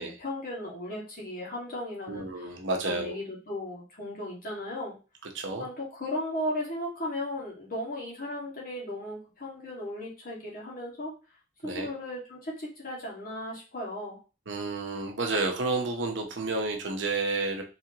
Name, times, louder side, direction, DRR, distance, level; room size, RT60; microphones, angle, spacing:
voice 1, 0.0-2.6 2.8-5.0 5.6-11.1 11.6-14.2, left 1 dB, 50° left, -4 dB, 2.0 m, -36 dB
voice 2, 2.1-3.2 5.3-5.7 11.6-11.9 14.5-17.6, right 3 dB, 85° right, 2 dB, 1.0 m, -30 dB
4.5 x 3.4 x 2.9 m, 0.32 s
head